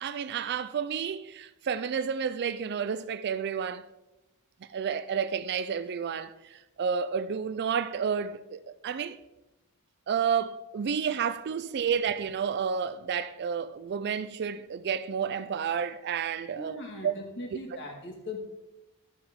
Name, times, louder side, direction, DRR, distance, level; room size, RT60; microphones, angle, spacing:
voice 1, 0.0-3.8 4.7-9.2 10.1-17.1, right 7 dB, 50° right, 0.4 m, -31 dB
voice 2, 16.6-18.4, left 2 dB, 55° left, 2.0 m, -40 dB
12.0 x 6.9 x 3.7 m
head